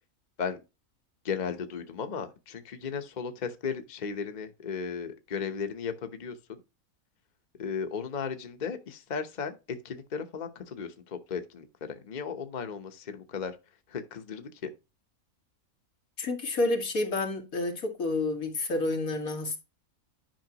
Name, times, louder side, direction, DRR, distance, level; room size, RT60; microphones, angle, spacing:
voice 1, 1.2-6.6 7.6-13.6 13.9-14.7, left 6 dB, 35° left, 1.0 m, -35 dB
voice 2, 16.2-19.6, left 2 dB, 85° left, 2.3 m, -29 dB
10.5 x 5.7 x 2.9 m
omnidirectional pair, 1.4 m